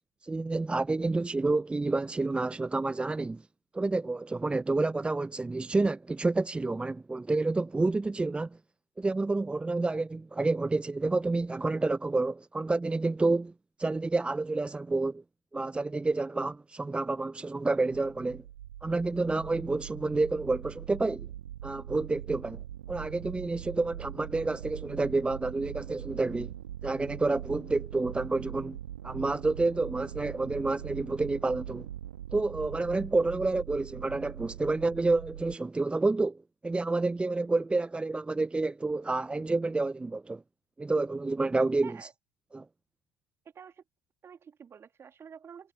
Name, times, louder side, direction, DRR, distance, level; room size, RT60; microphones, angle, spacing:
voice 1, 0.2-3.5 3.7-8.6 9.0-13.5 13.8-15.2 15.5-18.4 18.8-21.3 21.6-22.6 22.9-26.5 26.8-28.8 29.0-31.9 32.3-40.4 40.8-42.1 42.5-42.7, right 3 dB, 15° right, 0.8 m, -29 dB
sound 1, 17.9-35.6, right 12 dB, 75° right, 1.9 m, -42 dB
voice 2, 44.2-45.7, right 7 dB, 35° right, 3.0 m, -49 dB
figure-of-eight pair, 55°, 7 cm